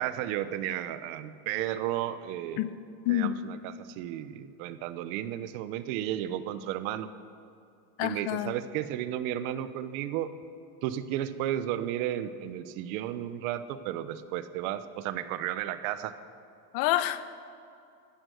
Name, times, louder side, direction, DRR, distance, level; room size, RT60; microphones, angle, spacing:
voice 1, 0.0-2.6 3.1-7.1 8.0-10.3 10.8-16.1, right 12 dB, 55° right, 13 dB, 1.0 m, -33 dB
voice 2, 8.0-8.5 16.7-17.3, left 14 dB, 50° left, 13 dB, 0.9 m, -27 dB
15.5 x 13.5 x 6.5 m, 2.4 s
supercardioid pair, 145°, 49 cm